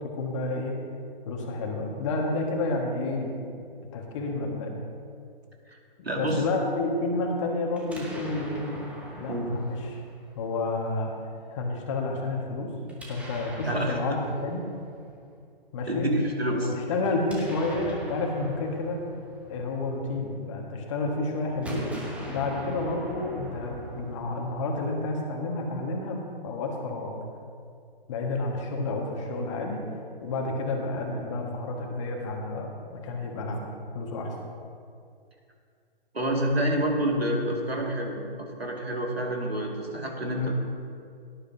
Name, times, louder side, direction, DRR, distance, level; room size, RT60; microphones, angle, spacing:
voice 1, 0.1-0.7 1.2-3.4 3.9-4.7 6.1-8.6 9.2-10.0 10.3-11.1 11.5-12.7 13.1-14.7 15.7-16.1 16.5-19.1 19.5-21.9 22.3-27.1 28.1-29.8 30.2-33.7 33.9-34.3 39.9-40.0 40.3-40.5, left 2 dB, 30° left, 1 dB, 1.7 m, -30 dB
voice 2, 6.0-6.4 9.3-9.5 13.7-14.0 15.9-16.7 36.1-40.5, right 1 dB, 85° right, 0 dB, 2.4 m, -28 dB
Explosion, 7.7-10.8 12.8-15.1 17.0-20.4 21.5-24.8, equal, 5° right, 1.0 m, -42 dB
17.5 x 10.0 x 2.8 m, 2.3 s
figure-of-eight pair, 135°, 30 cm